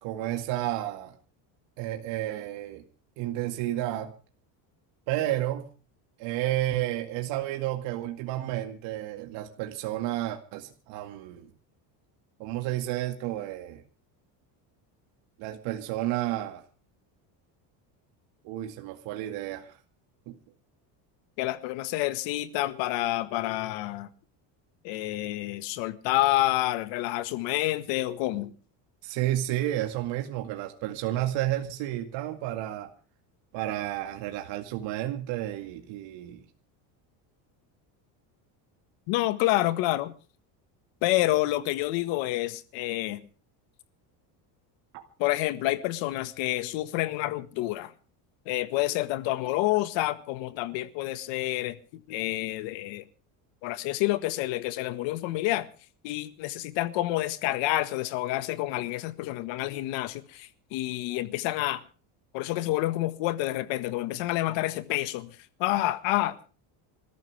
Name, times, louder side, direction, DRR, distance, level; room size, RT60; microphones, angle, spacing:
voice 1, 0.0-1.1 1.8-2.8 3.2-4.1 5.1-5.7 6.2-11.5 12.4-13.8 15.4-16.6 18.4-19.8 20.3-20.4 29.0-32.9 33.5-36.4 44.9-45.1, right 14 dB, 70° right, 2.2 m, -31 dB
voice 2, 21.4-24.1 24.8-28.5 39.1-40.1 41.0-43.3 45.2-47.9 48.5-51.8 52.1-53.0 53.6-55.7 56.0-61.8 62.3-66.5, left 16 dB, 70° left, 1.8 m, -28 dB
27.0 x 13.5 x 3.4 m
cardioid pair, 135°, 46 cm